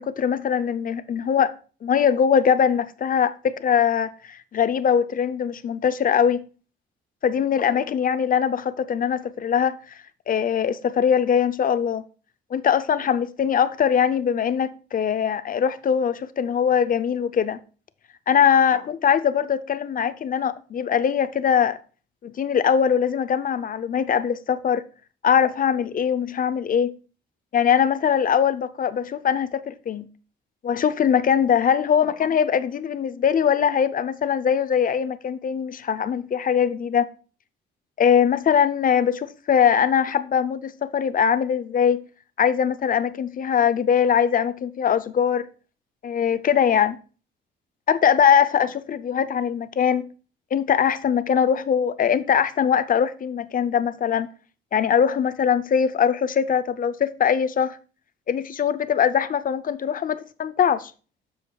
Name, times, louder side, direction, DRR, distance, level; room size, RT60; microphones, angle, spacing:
voice 1, 0.0-1.5 1.8-6.4 7.2-9.8 10.3-12.0 12.5-17.6 18.3-21.8 22.2-24.8 25.2-27.0 27.5-30.1 30.6-37.1 38.0-42.0 42.4-45.5 46.0-47.0 47.9-50.1 50.5-54.3 54.7-57.8 58.3-60.9, left 8 dB, 45° left, 0.6 m, -21 dB
13.5 x 4.9 x 2.3 m
cardioid pair, 90°, 20 cm